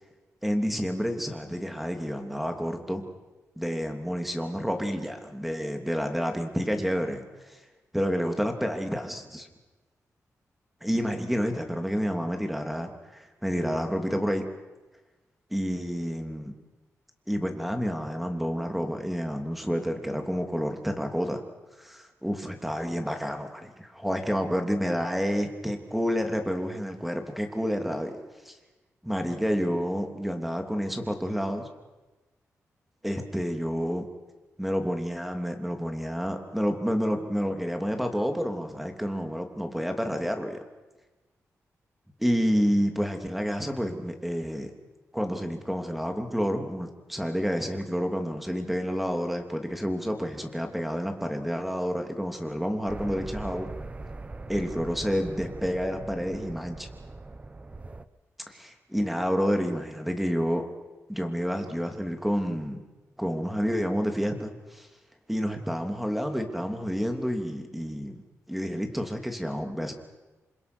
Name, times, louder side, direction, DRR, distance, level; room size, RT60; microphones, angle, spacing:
voice 1, 0.4-3.1 3.6-7.6 7.9-9.5 10.8-14.4 15.5-16.5 17.3-21.4 21.8-28.2 28.4-28.5 29.0-31.7 33.0-34.0 34.6-40.6 42.2-44.7 45.1-53.7 54.5-56.9 58.5-60.6 61.1-62.8 63.2-64.9 65.3-68.2 68.5-69.9, equal, ahead, 5 dB, 3.1 m, -29 dB
sound 1, 52.9-58.0, right 2 dB, 25° right, 1.0 m, -41 dB
28.0 x 26.0 x 6.3 m, 1.2 s
wide cardioid pair, 120°, 5 cm